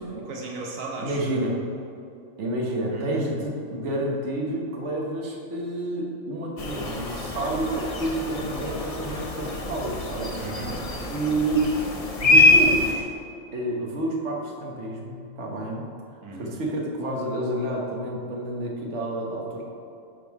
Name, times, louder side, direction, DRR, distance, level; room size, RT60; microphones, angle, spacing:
voice 1, 0.2-1.5 2.9-3.3 10.4-10.8 16.2-16.5, right 3 dB, 90° right, -2 dB, 1.4 m, -36 dB
voice 2, 1.0-1.6 2.4-10.4 11.1-11.8 12.2-13.1 13.5-15.8 16.3-19.6, right 1 dB, 65° right, -2 dB, 1.5 m, -29 dB
sound 1, 6.6-12.9, left 2 dB, 35° left, 0.7 m, -24 dB
9.9 x 5.4 x 4.7 m, 2.5 s
omnidirectional pair, 1.3 m